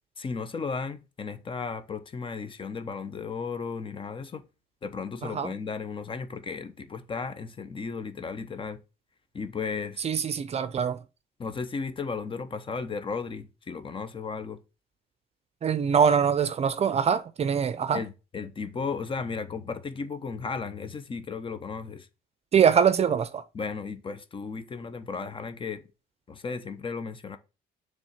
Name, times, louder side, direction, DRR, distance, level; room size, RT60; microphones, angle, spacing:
voice 1, 0.2-4.4 4.8-8.8 9.3-10.0 11.4-14.6 17.9-22.1 23.5-25.8 26.3-27.4, left 5 dB, 30° left, 1.0 m, -35 dB
voice 2, 5.2-5.5 10.0-11.0 15.6-18.0 22.5-23.4, right 7 dB, 40° right, 0.6 m, -23 dB
7.0 x 3.5 x 5.8 m
cardioid pair, 110°, 17 cm